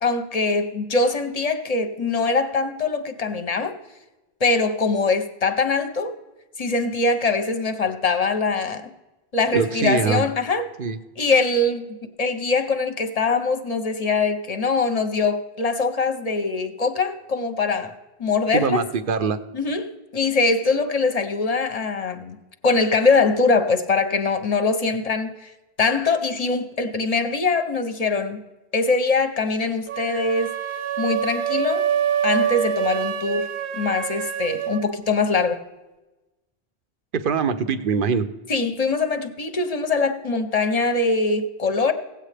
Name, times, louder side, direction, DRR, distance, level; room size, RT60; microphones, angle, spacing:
voice 1, 0.0-3.7 4.4-6.1 6.6-8.8 9.3-10.7 11.2-11.9 12.2-17.9 18.2-18.8 19.5-22.4 22.6-25.5 25.8-28.4 28.7-30.5 31.0-31.9 32.2-33.5 33.8-35.6 38.5-41.9, left 3 dB, 40° left, 0.7 m, -22 dB
voice 2, 9.5-10.2 10.8-11.0 18.5-19.4 37.1-38.3, right 5 dB, 60° right, 0.7 m, -23 dB
sound 1, 29.9-34.8, right 8 dB, 85° right, 1.0 m, -25 dB
17.0 x 8.2 x 3.3 m
omnidirectional pair, 1.1 m